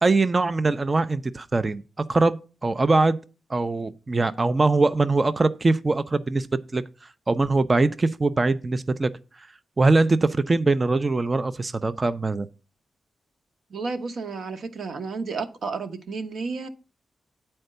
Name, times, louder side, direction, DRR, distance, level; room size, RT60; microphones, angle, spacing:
voice 1, 0.0-1.8 2.1-2.4 2.6-3.2 3.5-6.5 6.7-9.1 9.4-9.5 9.8-12.5, right 3 dB, 25° right, 0.4 m, -22 dB
voice 2, 13.7-16.7, right 4 dB, 60° right, 1.0 m, -32 dB
9.0 x 4.4 x 6.6 m
wide cardioid pair, 135°, 0 cm